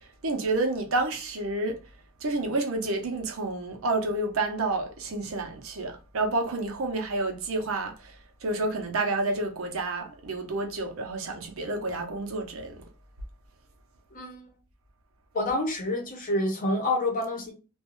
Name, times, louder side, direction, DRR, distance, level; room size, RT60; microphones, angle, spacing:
voice 1, 0.2-1.8 2.2-8.1 8.4-12.8, right 2 dB, 75° right, 0.6 m, -29 dB
voice 2, 14.1-14.4 15.3-17.5, left 1 dB, 40° left, 0.8 m, -28 dB
2.4 x 2.2 x 3.0 m
head